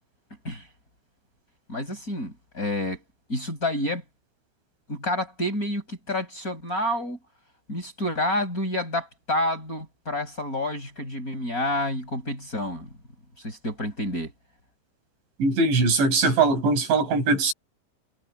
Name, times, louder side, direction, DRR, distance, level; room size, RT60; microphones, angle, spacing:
voice 1, 1.7-3.0 3.3-4.0 4.9-7.2 7.7-12.9 13.4-14.3, left 1 dB, 20° left, 5.4 m, -29 dB
voice 2, 15.4-17.5, right 3 dB, 70° right, 9.1 m, -21 dB
omnidirectional pair, 5.4 m